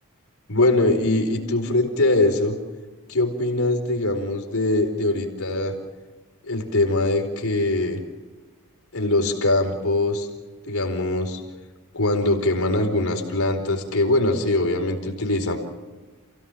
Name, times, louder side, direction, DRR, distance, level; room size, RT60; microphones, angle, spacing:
voice 1, 0.5-2.6 3.1-5.7 6.5-8.0 8.9-10.3 10.6-11.4 11.9-15.6, left 2 dB, 70° left, 3 dB, 4.4 m, -22 dB
29.0 x 17.0 x 7.4 m, 1.3 s
head